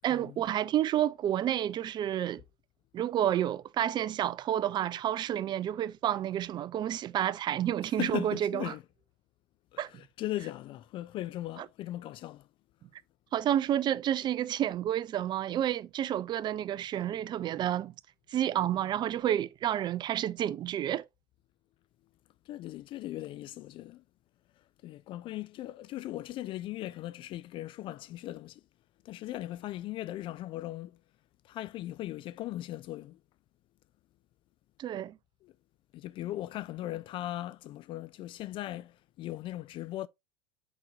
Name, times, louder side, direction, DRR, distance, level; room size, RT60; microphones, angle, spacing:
voice 1, 0.0-2.4 2.9-8.6 9.8-9.9 13.3-17.9 18.3-21.0 34.8-35.2, right 11 dB, 30° right, 0.5 m, -30 dB
voice 2, 8.0-8.8 9.7-12.5 22.5-24.0 24.6-28.6 29.0-31.0 31.4-33.2 35.4-35.5 35.9-40.1, left 15 dB, 40° left, 0.4 m, -38 dB
7.9 x 5.2 x 2.5 m
hypercardioid pair, 100°, 14 cm